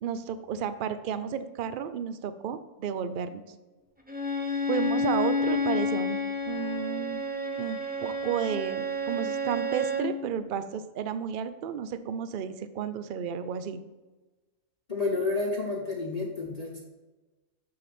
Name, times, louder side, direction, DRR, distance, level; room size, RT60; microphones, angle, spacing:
voice 1, 0.0-3.4 4.7-6.2 6.5-7.2 7.5-13.8, right 8 dB, 60° right, 11 dB, 0.5 m, -32 dB
Bowed string instrument, 4.1-10.2, left 1 dB, 10° right, 0.8 m, -30 dB
voice 2, 14.9-16.8, left 3 dB, 30° left, -2 dB, 1.0 m, -30 dB
6.9 x 6.5 x 4.2 m, 1.2 s
omnidirectional pair, 1.4 m